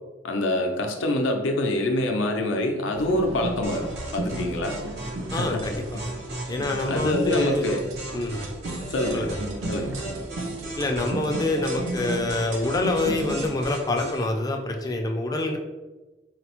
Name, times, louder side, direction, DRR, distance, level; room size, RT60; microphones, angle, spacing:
voice 1, 0.2-4.8 5.3-5.6 6.8-7.9 8.9-9.4 9.7-10.0, left 1 dB, 85° left, 3 dB, 0.5 m, -25 dB
sound 1, 2.9-13.5, right 2 dB, 85° right, 0.5 m, -35 dB
sound 2, 3.6-14.3, right 1 dB, 60° right, 0.9 m, -37 dB
voice 2, 5.3-6.0 6.5-7.7 8.1-8.4 9.1-9.4 10.8-15.6, left 2 dB, 20° left, 3 dB, 0.4 m, -26 dB
4.2 x 2.0 x 2.9 m, 1.2 s
head